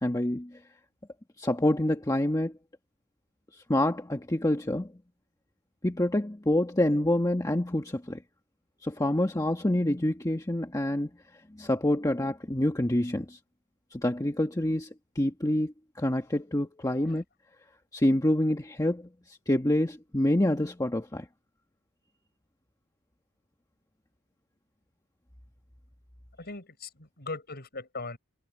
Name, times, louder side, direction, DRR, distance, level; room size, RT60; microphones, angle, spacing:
voice 1, 0.0-0.6 1.4-2.5 3.5-4.9 5.8-8.2 8.8-11.1 11.6-13.4 13.9-14.9 15.1-17.2 17.9-21.3, left 1 dB, 15° left, 1.3 m, -27 dB
voice 2, 26.4-28.2, left 3 dB, 45° left, 7.5 m, -39 dB
head